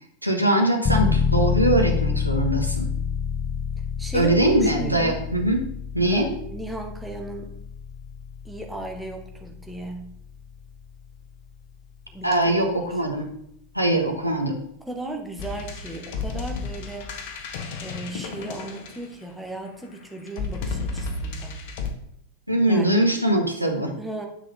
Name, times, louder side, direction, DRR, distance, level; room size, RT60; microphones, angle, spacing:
voice 1, 0.2-2.9 4.1-5.6 5.9-6.3 12.2-13.3 13.7-14.6 22.5-23.9, right 1 dB, 90° right, 3 dB, 1.4 m, -22 dB
sound 1, 0.9-11.4, left 6 dB, 20° left, 0.7 m, -28 dB
voice 2, 4.0-5.2 6.1-7.6 8.4-10.1 12.1-13.0 14.9-17.2 17.8-21.6 22.6-23.1 24.0-24.3, right 2 dB, 5° right, 1 dB, 1.5 m, -36 dB
sound 2, 15.4-19.4 20.3-21.9, left 4 dB, 50° left, 1.2 m, -32 dB
9.8 x 6.2 x 3.7 m, 0.74 s
figure-of-eight pair, 90°, 0 cm